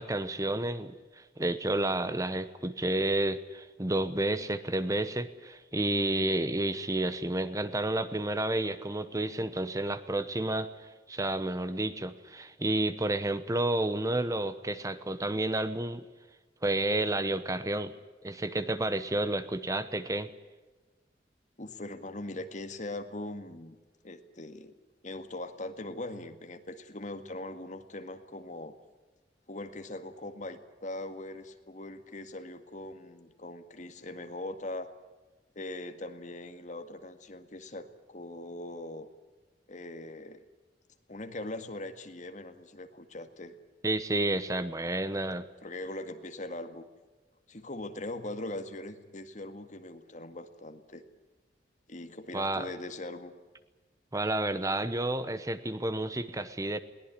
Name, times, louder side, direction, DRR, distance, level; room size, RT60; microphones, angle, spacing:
voice 1, 0.0-16.0 16.6-17.9 18.2-20.3 43.8-45.5 52.3-52.7 54.1-56.8, right 1 dB, 20° right, 13 dB, 0.9 m, -30 dB
voice 2, 21.6-23.8 24.0-24.8 25.0-28.8 29.5-34.9 35.6-39.1 39.7-40.4 41.1-43.5 45.6-46.9 47.5-51.0 51.9-53.3, left 2 dB, 45° left, 8 dB, 1.9 m, -41 dB
21.5 x 19.0 x 9.9 m, 1.3 s
head